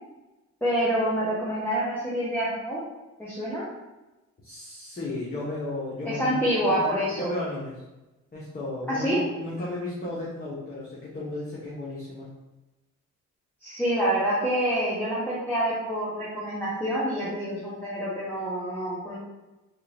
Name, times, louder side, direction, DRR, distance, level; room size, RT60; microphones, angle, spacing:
voice 1, 0.6-2.8 3.2-3.7 6.0-7.3 8.9-9.2 13.6-19.2, equal, 5° left, -9 dB, 0.9 m, -27 dB
voice 2, 4.4-7.8 8.3-12.3, left 2 dB, 30° left, -7 dB, 1.0 m, -34 dB
3.6 x 2.5 x 3.3 m, 1.1 s
cardioid pair, 90°, 30 cm